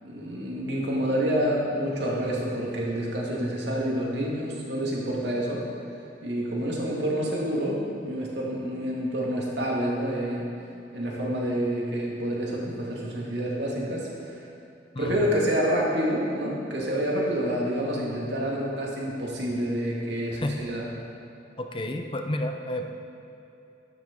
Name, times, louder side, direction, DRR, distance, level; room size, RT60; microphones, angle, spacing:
voice 1, 0.0-5.6 6.2-10.5 10.9-14.4 15.0-20.9, equal, 70° right, -3 dB, 2.2 m, -28 dB
voice 2, 14.9-15.4 20.3-20.6 21.6-22.9, left 1 dB, 30° left, 4 dB, 0.7 m, -31 dB
12.0 x 10.5 x 3.8 m, 2.8 s
head